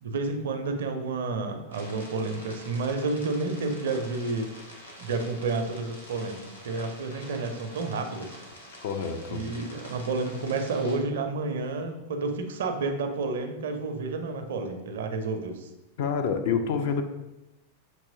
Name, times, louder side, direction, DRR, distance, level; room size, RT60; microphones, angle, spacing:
voice 1, 0.0-4.5 5.0-6.4 6.6-8.4 9.3-15.7, right 3 dB, 60° right, 6 dB, 0.5 m, -30 dB
sound 1, 1.7-11.0, equal, 80° left, 0.9 m, -47 dB
voice 2, 8.8-9.5 16.0-17.0, left 6 dB, 50° left, 6 dB, 0.4 m, -27 dB
5.9 x 2.8 x 2.7 m, 0.98 s
figure-of-eight pair, 90°, 0 cm